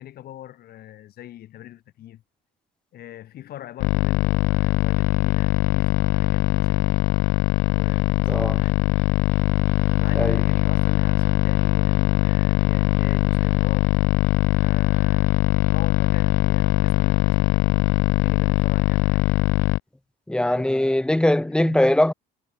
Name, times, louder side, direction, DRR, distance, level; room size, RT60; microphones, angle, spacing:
voice 1, 0.0-2.2 2.9-7.1 7.6-9.1 9.8-13.9 14.6-19.5 20.5-20.8 21.6-21.9, left 13 dB, 55° left, 7.7 m, -42 dB
sound 1, 3.8-19.8, left 20 dB, 85° left, 1.5 m, -21 dB
voice 2, 8.3-8.6 10.1-10.4 20.3-22.1, left 1 dB, 5° left, 1.5 m, -21 dB
cardioid pair, 170°, 19 cm